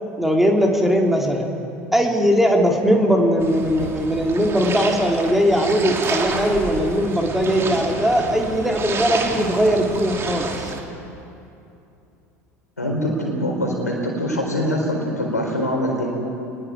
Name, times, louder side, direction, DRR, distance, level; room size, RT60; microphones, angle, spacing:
voice 1, 0.2-1.5 1.9-10.5, equal, 5° right, 1 dB, 2.6 m, -19 dB
sound 1, 3.4-10.8, right 4 dB, 30° right, 2.6 m, -29 dB
voice 2, 12.8-16.1, equal, 85° left, 0 dB, 4.3 m, -23 dB
27.5 x 20.5 x 4.7 m, 2.7 s
figure-of-eight pair, 75°, 9 cm